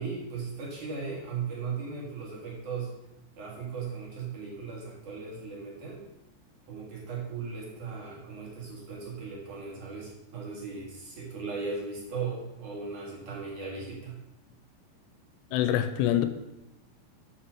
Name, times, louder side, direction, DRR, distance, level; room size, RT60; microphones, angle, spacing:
voice 1, 0.0-3.0 3.4-6.1 6.7-14.2, right 5 dB, 55° right, -4 dB, 2.8 m, -37 dB
voice 2, 15.5-16.3, left 11 dB, 85° left, 11 dB, 2.7 m, -25 dB
7.4 x 5.7 x 6.4 m, 0.94 s
omnidirectional pair, 5.0 m